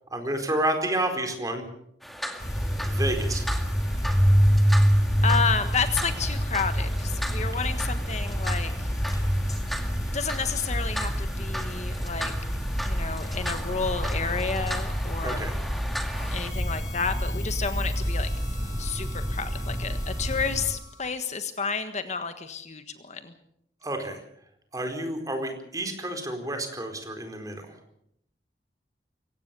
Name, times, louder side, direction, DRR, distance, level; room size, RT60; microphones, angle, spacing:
voice 1, 0.1-1.6 2.8-3.4 15.2-15.5 23.8-24.2 24.7-27.7, right 1 dB, 20° right, 5 dB, 4.4 m, -30 dB
sound 1, 2.0-16.5, equal, ahead, 2.2 m, -38 dB
sound 2, 2.4-20.7, equal, 20° left, 5.5 m, -27 dB
voice 2, 5.2-8.9 10.1-12.3 12.8-15.5 16.3-18.3 18.8-23.3, left 5 dB, 40° left, 9 dB, 1.5 m, -31 dB
Harmonica, 16.1-21.2, left 5 dB, 90° left, 4.5 m, -47 dB
23.5 x 18.0 x 6.9 m, 0.72 s
head